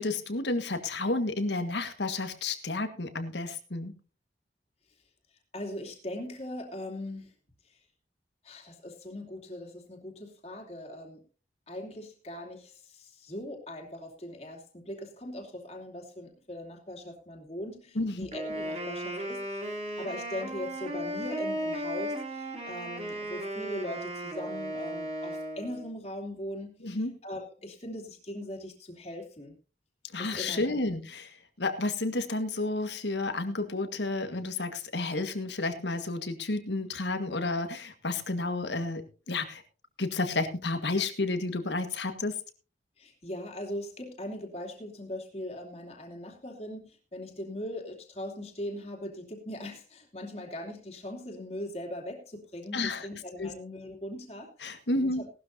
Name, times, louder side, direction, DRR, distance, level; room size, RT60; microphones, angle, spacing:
voice 1, 0.0-4.0 18.0-18.3 26.8-27.1 30.1-31.3 31.6-39.6 40.0-42.3 52.7-53.1 53.4-53.5 54.6-55.2, left 2 dB, 75° left, 8 dB, 1.7 m, -31 dB
voice 2, 5.5-7.3 8.4-11.2 11.7-19.6 20.0-29.5 30.2-30.8 43.0-54.7 55.0-55.2, left 1 dB, 35° left, 1 dB, 3.0 m, -40 dB
Wind instrument woodwind instrument, 18.3-25.9, right 1 dB, 35° right, 3.4 m, -35 dB
18.5 x 12.5 x 2.8 m, 0.35 s
head